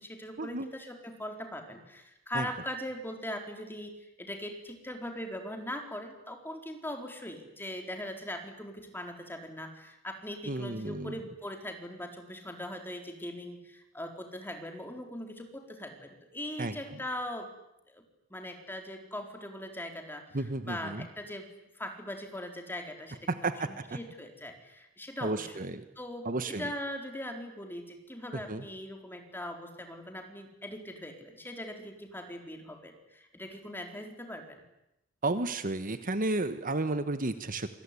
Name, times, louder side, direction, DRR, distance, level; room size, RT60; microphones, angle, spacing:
voice 1, 0.0-3.9 4.2-17.5 17.9-18.0 18.3-34.6, left 1 dB, 10° left, 4 dB, 4.2 m, -41 dB
voice 2, 10.5-11.2 16.6-16.8 20.3-21.1 23.4-24.0 25.2-25.8 26.2-26.7 28.3-28.6 35.2-37.7, right 2 dB, 40° right, 11 dB, 1.3 m, -32 dB
27.0 x 21.0 x 9.9 m, 0.87 s
head